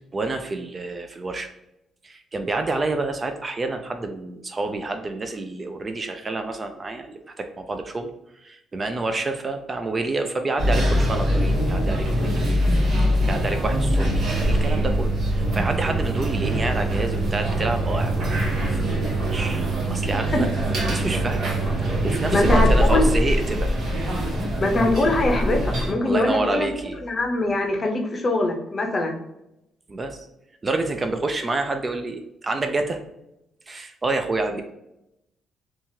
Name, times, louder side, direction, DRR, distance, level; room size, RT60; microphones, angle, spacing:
voice 1, 0.1-1.5 2.0-8.1 8.4-12.6 13.3-18.4 18.7-19.0 19.3-20.5 20.8-21.5 21.8-23.8 26.0-27.0 29.9-30.2 30.6-33.0 33.7-34.6, right 3 dB, 30° right, 6 dB, 0.3 m, -28 dB
sound 1, 10.6-25.9, right 1 dB, 65° right, 1.1 m, -23 dB
voice 2, 22.3-23.0 24.6-26.7 27.0-29.2, left 2 dB, 35° left, 3 dB, 0.6 m, -22 dB
2.9 x 2.3 x 2.7 m, 0.86 s
cardioid pair, 90°, 0 cm